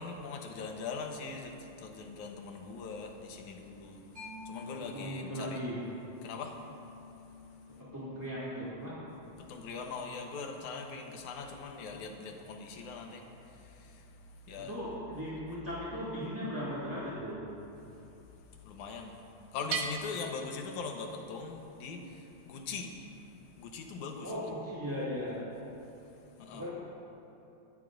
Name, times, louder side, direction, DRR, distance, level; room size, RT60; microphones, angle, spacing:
voice 1, 0.0-4.0 4.5-5.6 6.2-6.6 9.4-14.0 14.5-14.7 18.6-19.2 19.5-23.0 23.6-24.3 26.4-26.6, left 4 dB, 90° left, 3 dB, 2.5 m, -41 dB
Mallet percussion, 4.2-11.4, left 3 dB, 55° right, 3.8 m, -51 dB
voice 2, 4.6-5.8 7.7-9.0 9.5-9.6 14.6-17.5 24.2-25.5 26.5-26.7, equal, 10° right, -11 dB, 1.7 m, -38 dB
Bell, 19.7-21.4, right 6 dB, 75° right, 1.1 m, -39 dB
22.5 x 13.0 x 2.6 m, 2.8 s
omnidirectional pair, 3.3 m